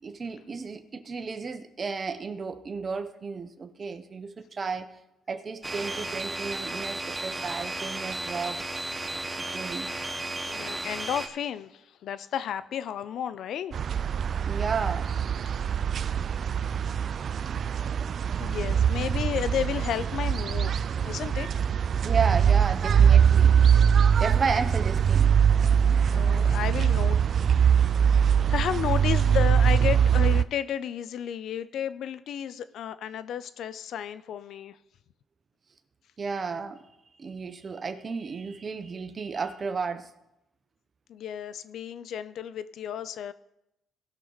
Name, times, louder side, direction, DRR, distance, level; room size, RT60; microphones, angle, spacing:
voice 1, 0.0-4.9 5.3-8.6 9.4-10.0 14.5-15.2 22.0-23.7 24.2-25.4 36.2-36.8 37.2-40.1, right 5 dB, 40° right, 10 dB, 0.9 m, -33 dB
sound 1, 5.6-11.3, right 2 dB, 15° right, 1.0 m, -34 dB
voice 2, 9.0-9.4 10.5-13.7 18.4-20.7 21.0-21.5 26.1-27.2 27.7-34.8 41.1-43.3, left 9 dB, 75° left, 15 dB, 0.5 m, -33 dB
sound 2, 13.7-30.4, right 8 dB, 55° right, 0.4 m, -22 dB
17.5 x 6.5 x 4.0 m, 0.86 s
cardioid pair, 90°, 0 cm